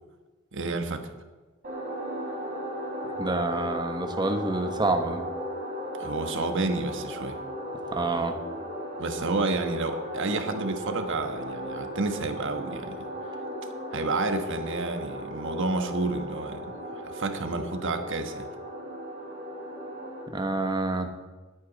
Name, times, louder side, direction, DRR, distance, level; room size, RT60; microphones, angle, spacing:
voice 1, 0.5-1.1 6.0-7.4 9.0-13.1 13.9-18.5, right 3 dB, 60° right, 7 dB, 1.3 m, -30 dB
sound 1, 1.6-20.2, equal, 40° right, 4.5 m, -36 dB
voice 2, 3.2-5.2 7.9-8.3 20.3-21.1, right 2 dB, 20° right, 6 dB, 1.2 m, -27 dB
20.5 x 8.7 x 4.1 m, 1.3 s
head